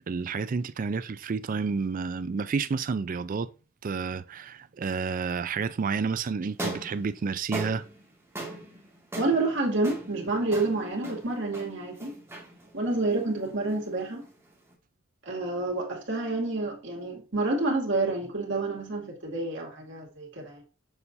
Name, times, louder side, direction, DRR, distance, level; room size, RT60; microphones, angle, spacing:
voice 1, 0.1-3.5 3.8-7.9, right 5 dB, 40° right, 0.4 m, -30 dB
sound 1, 6.5-14.7, right 1 dB, 15° right, 1.7 m, -40 dB
voice 2, 9.2-12.2 12.7-14.2 15.2-20.6, right 2 dB, 65° right, 2.3 m, -29 dB
7.0 x 5.5 x 2.6 m
head